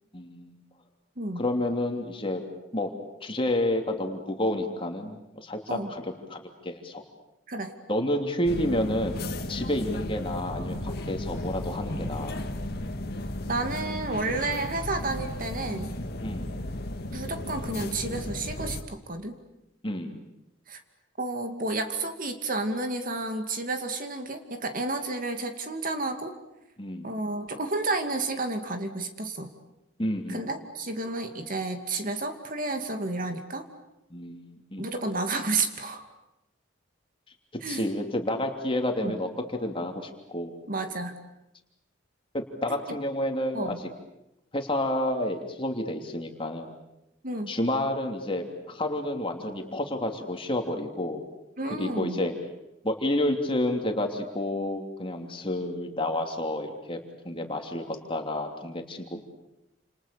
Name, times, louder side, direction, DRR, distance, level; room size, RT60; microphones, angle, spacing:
voice 1, 0.1-0.6 1.3-2.4 2.7-2.9 3.2-7.0 7.9-12.4 16.2-16.6 19.8-20.2 26.8-27.1 30.0-30.5 34.1-34.9 37.7-40.6 42.3-43.7 44.5-46.7 47.5-51.2 51.7-52.3 52.8-59.2, left 1 dB, 25° left, 4 dB, 3.1 m, -30 dB
sound 1, 8.5-18.8, left 1 dB, 55° left, 2.0 m, -34 dB
voice 2, 13.5-15.9 17.1-19.4 20.7-20.8 21.2-26.4 27.0-29.5 30.3-33.7 34.8-36.0 37.6-37.9 39.0-39.2 40.7-41.2 43.5-43.8 47.2-47.5 51.6-52.2, right 2 dB, 45° right, 6 dB, 2.4 m, -31 dB
29.0 x 28.0 x 6.9 m, 0.89 s
head